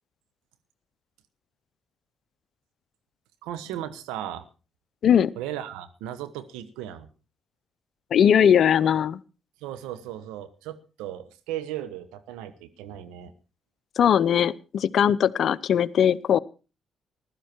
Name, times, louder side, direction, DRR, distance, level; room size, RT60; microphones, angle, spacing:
voice 1, 3.4-4.4 5.4-7.1 9.6-13.3, right 11 dB, 85° right, 12 dB, 1.2 m, -36 dB
voice 2, 8.1-9.2 14.0-16.4, left 8 dB, 65° left, 19 dB, 0.6 m, -20 dB
15.5 x 12.5 x 4.5 m, 0.33 s
supercardioid pair, 55°, 0 cm